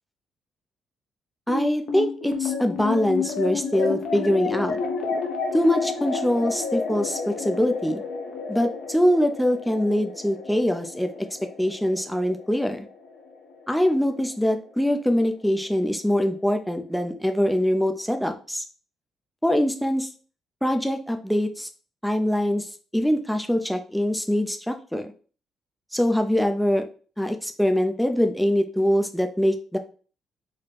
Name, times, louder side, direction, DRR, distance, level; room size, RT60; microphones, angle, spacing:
sound 1, 1.5-14.1, left 4 dB, 70° left, 0.8 m, -31 dB
voice 1, 1.5-4.8 5.5-8.0 8.5-11.3 11.6-12.9 13.7-18.6 19.4-20.1 20.6-21.7 22.0-22.7 22.9-25.1 25.9-26.8 27.2-29.8, equal, ahead, 6 dB, 0.5 m, -23 dB
4.1 x 2.2 x 3.2 m, 0.40 s
cardioid pair, 90°, 0 cm